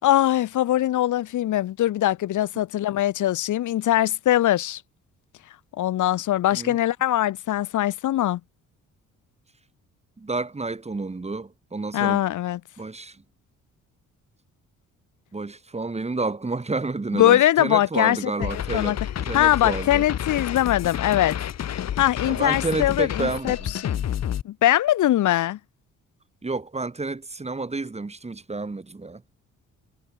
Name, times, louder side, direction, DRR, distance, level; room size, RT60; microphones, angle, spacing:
voice 1, 0.0-4.8 5.8-8.4 11.9-12.6 17.1-19.0 19.3-21.4 22.0-23.6 23.8-23.9 24.4-25.6, left 13 dB, 80° left, 3.1 m, -22 dB
voice 2, 10.2-12.2 12.8-13.2 15.3-19.0 19.3-20.0 22.2-24.1 26.4-29.2, right 3 dB, 20° right, 3.9 m, -30 dB
sound 1, 18.4-24.4, left 10 dB, 60° left, 2.1 m, -30 dB
cardioid pair, 90°, 30 cm